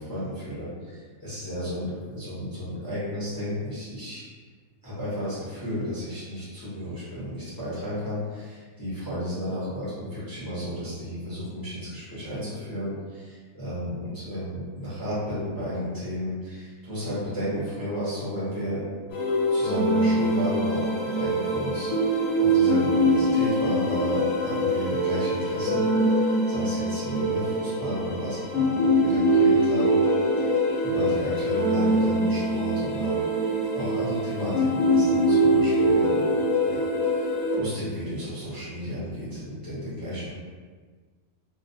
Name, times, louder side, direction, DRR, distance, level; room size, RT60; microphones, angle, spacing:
voice 1, 0.0-4.2 4.8-18.8 19.5-30.0 30.4-33.2 33.7-36.3 36.6-37.3 37.6-40.3, equal, 25° left, -11 dB, 0.4 m, -33 dB
sound 1, 19.1-37.6, equal, 70° left, 0.9 m, -23 dB
2.4 x 2.2 x 2.6 m, 1.5 s
omnidirectional pair, 1.6 m